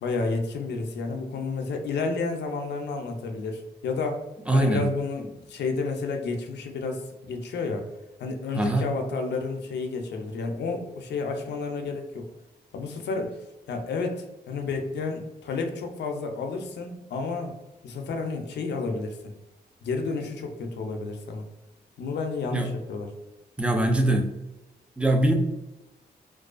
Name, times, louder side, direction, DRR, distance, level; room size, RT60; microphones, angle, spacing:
voice 1, 0.0-4.2 4.5-7.9 8.2-12.3 12.7-13.4 13.7-17.5 17.8-19.3 19.8-21.4 22.0-23.1, left 4 dB, 90° left, 4 dB, 0.4 m, -31 dB
voice 2, 4.5-4.9 8.5-8.9 22.5-22.7 23.6-24.3 25.0-25.3, right 1 dB, 5° right, 3 dB, 0.4 m, -22 dB
2.4 x 2.2 x 2.4 m, 0.98 s
cardioid pair, 75°, 17 cm